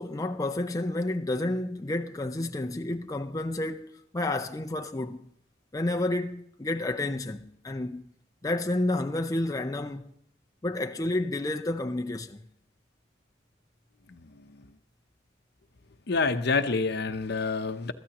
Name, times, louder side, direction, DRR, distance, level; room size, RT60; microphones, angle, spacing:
voice 1, 0.0-5.3 5.7-8.1 8.4-10.1 10.6-12.4, left 2 dB, 20° left, 0.5 m, -30 dB
voice 2, 16.1-17.9, left 4 dB, 60° left, 0.8 m, -27 dB
21.5 x 13.5 x 3.0 m
head